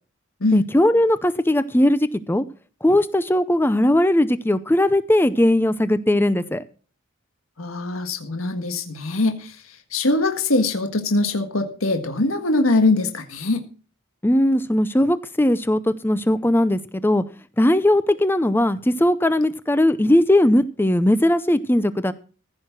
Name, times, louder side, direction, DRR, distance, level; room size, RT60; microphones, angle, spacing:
voice 1, 0.5-2.4 2.8-6.6 14.2-17.2 17.6-22.1, left 1 dB, 10° left, 13 dB, 0.6 m, -19 dB
voice 2, 7.6-13.6, left 2 dB, 85° left, 5 dB, 1.7 m, -22 dB
15.5 x 6.4 x 6.0 m, 0.37 s
head